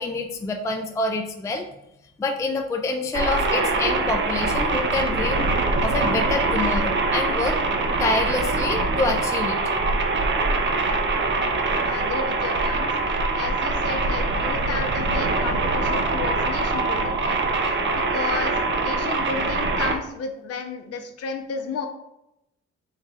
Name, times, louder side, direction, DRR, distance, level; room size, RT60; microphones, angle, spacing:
voice 1, 0.0-1.6 2.2-5.5 5.8-7.6 8.0-9.6, left 3 dB, 10° left, 4 dB, 0.3 m, -26 dB
sound 1, 3.1-20.0, right 3 dB, 40° right, 0.5 m, -23 dB
voice 2, 11.8-17.4 17.6-21.9, left 5 dB, 55° left, 5 dB, 0.6 m, -33 dB
4.1 x 2.4 x 3.4 m, 0.84 s
cardioid pair, 90°, 30 cm